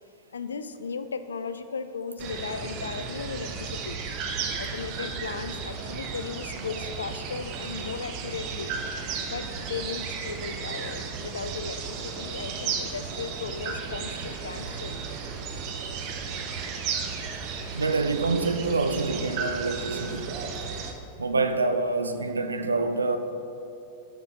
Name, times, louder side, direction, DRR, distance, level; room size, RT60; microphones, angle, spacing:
voice 1, 0.3-4.0 4.6-8.7 9.2-15.0, left 5 dB, 70° left, 0.3 m, -36 dB
sound 1, 2.2-20.9, right 5 dB, 40° right, 0.7 m, -34 dB
voice 2, 17.7-20.4 21.2-23.2, right 3 dB, 75° right, 0.4 m, -26 dB
6.8 x 6.5 x 4.0 m
figure-of-eight pair, 90°, 0 cm